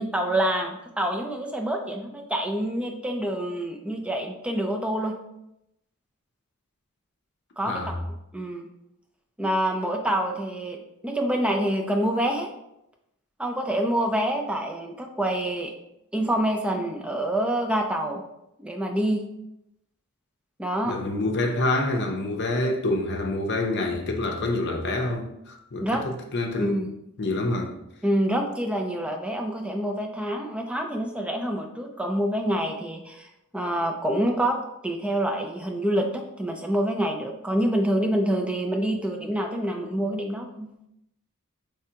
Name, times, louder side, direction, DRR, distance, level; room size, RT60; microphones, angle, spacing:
voice 1, 0.0-5.2 7.6-7.7 8.3-8.7 9.4-12.5 13.4-15.7 16.1-18.2 18.6-19.2 20.6-21.0 25.8-26.0 26.6-26.9 28.0-33.3 33.5-34.5 34.8-36.1 36.4-40.7, right 1 dB, 5° right, 0.4 m, -26 dB
voice 2, 20.9-26.8 27.2-27.8, left 2 dB, 50° left, 0.7 m, -27 dB
4.7 x 3.3 x 2.8 m
head